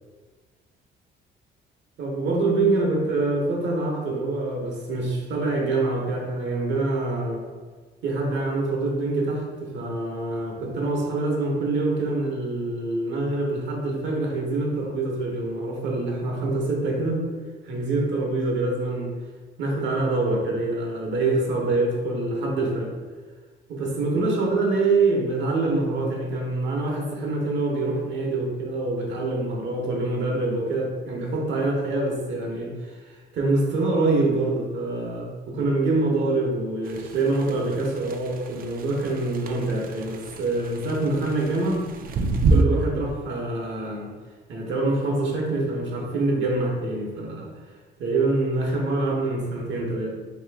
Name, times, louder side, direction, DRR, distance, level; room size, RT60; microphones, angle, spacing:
voice 1, 2.0-7.4 8.0-17.2 17.6-19.1 19.6-22.9 23.7-41.9 42.5-44.1 44.5-47.5 48.0-50.1, right 2 dB, 70° right, -1 dB, 0.9 m, -25 dB
sound 1, 36.9-42.6, right 3 dB, 45° right, 0.4 m, -27 dB
3.1 x 2.9 x 3.4 m, 1.4 s
cardioid pair, 90°, 20 cm